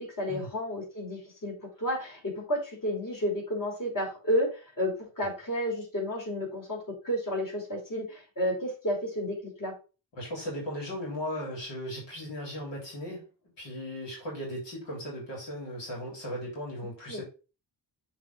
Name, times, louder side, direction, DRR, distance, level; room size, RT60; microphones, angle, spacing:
voice 1, 0.2-9.7 17.1-17.2, equal, 50° left, -2 dB, 4.7 m, -31 dB
voice 2, 10.2-13.3 13.6-17.2, equal, 85° left, -3 dB, 3.8 m, -37 dB
7.3 x 4.5 x 4.4 m, 0.33 s
cardioid pair, 85°, 42 cm